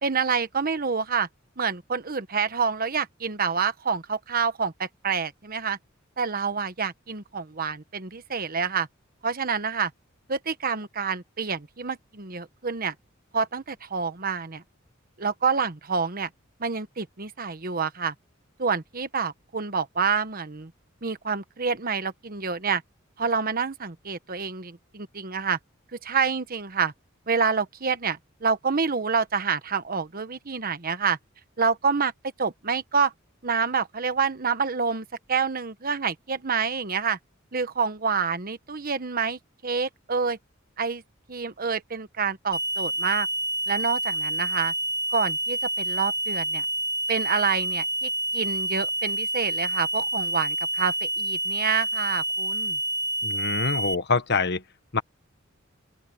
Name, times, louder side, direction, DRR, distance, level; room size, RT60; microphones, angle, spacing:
voice 1, 0.0-1.3 1.6-5.8 6.2-8.9 9.2-9.9 10.3-12.9 13.3-14.6 15.2-16.3 16.6-18.1 18.6-20.7 21.0-22.8 23.2-25.6 26.0-26.9 27.3-31.2 31.6-32.1 32.4-33.1 33.4-37.2 37.5-40.4 40.8-41.0 41.3-43.3 43.7-44.7 45.1-46.6 47.1-52.8, right 5 dB, 45° right, 1.2 m, -27 dB
sound 1, 42.5-53.9, right 1 dB, 20° left, 1.2 m, -28 dB
voice 2, 53.2-54.6 54.9-55.0, left 4 dB, 55° left, 1.4 m, -25 dB
open air
head